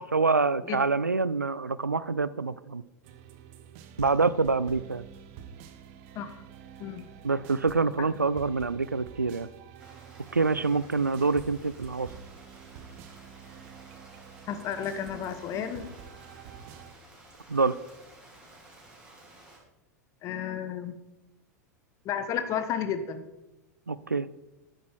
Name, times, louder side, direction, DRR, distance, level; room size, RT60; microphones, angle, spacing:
voice 1, 0.1-2.8 4.0-5.0 7.2-9.5 10.3-12.1 17.5-17.8 23.9-24.3, right 4 dB, 85° right, 17 dB, 0.4 m, -26 dB
sound 1, 3.0-16.9, right 8 dB, 45° right, 1.1 m, -48 dB
Rain, 9.8-19.6, right 2 dB, 10° right, 3.7 m, -53 dB
voice 2, 14.5-15.9 20.2-20.9 22.0-23.2, left 8 dB, 35° left, 10 dB, 1.1 m, -32 dB
12.0 x 9.0 x 4.4 m, 0.97 s
figure-of-eight pair, 90°, 9 cm